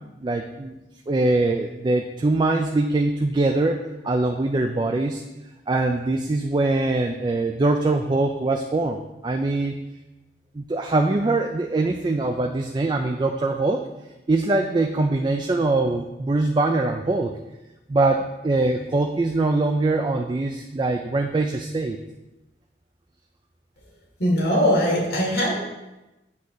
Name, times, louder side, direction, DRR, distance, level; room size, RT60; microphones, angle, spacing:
voice 1, 0.2-0.7 1.1-5.2 5.7-9.8 10.5-13.9 14.3-17.3 17.9-22.0, right 2 dB, 25° right, 4 dB, 0.3 m, -23 dB
voice 2, 24.2-25.6, equal, 75° left, -3 dB, 2.3 m, -21 dB
8.4 x 2.8 x 6.2 m, 1.0 s
head